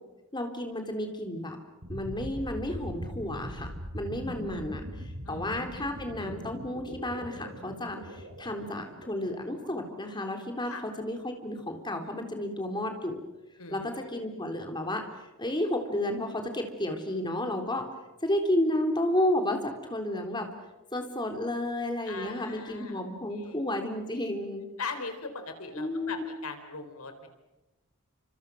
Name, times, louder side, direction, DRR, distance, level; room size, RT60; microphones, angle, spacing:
voice 1, 0.3-1.6 1.9-13.2 13.7-15.0 15.4-17.9 18.2-20.5 20.9-24.6 25.8-26.2, left 1 dB, 20° left, 4 dB, 3.7 m, -32 dB
sound 1, 1.8-10.7, equal, 75° right, 7.6 m, -41 dB
voice 2, 13.6-14.3 22.1-23.6 24.8-27.3, left 4 dB, 85° left, 7 dB, 4.3 m, -40 dB
29.5 x 26.5 x 6.4 m, 1.0 s
head